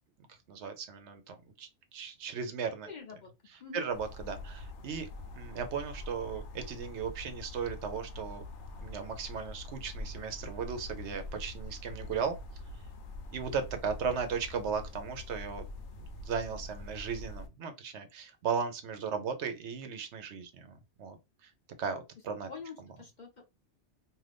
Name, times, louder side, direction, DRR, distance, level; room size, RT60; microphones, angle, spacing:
voice 1, 0.5-2.9 3.7-5.1 5.3-8.4 8.8-12.4 13.3-15.6 16.2-21.2 21.4-21.5 21.8-22.5 22.8-22.9, right 6 dB, 75° right, 0.9 m, -36 dB
voice 2, 2.8-3.3 3.6-3.8 22.5-23.5, left 5 dB, 50° left, 0.7 m, -45 dB
sound 1, 3.9-17.5, left 2 dB, 80° left, 0.9 m, -44 dB
2.6 x 2.5 x 3.3 m
omnidirectional pair, 1.2 m